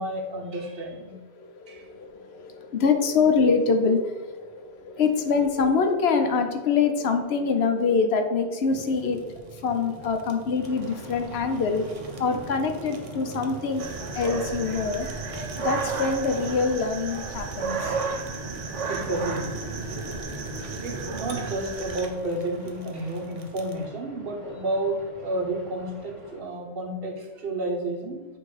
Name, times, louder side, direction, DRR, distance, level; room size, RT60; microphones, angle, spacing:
voice 1, 0.0-1.2 1.7-1.9 18.9-19.5 20.8-28.3, right 1 dB, 55° right, 2 dB, 1.0 m, -31 dB
voice 2, 1.4-15.1 15.4-18.0 18.8-18.9 20.6-20.7, left 5 dB, 65° left, 6 dB, 0.8 m, -25 dB
Fire, 8.7-23.8, right 3 dB, 40° right, 0.5 m, -40 dB
sound 1, 10.6-26.4, equal, 15° right, 1.4 m, -47 dB
sound 2, 13.8-22.1, right 4 dB, 80° right, 1.1 m, -33 dB
7.7 x 2.8 x 4.7 m, 1.3 s
omnidirectional pair, 1.2 m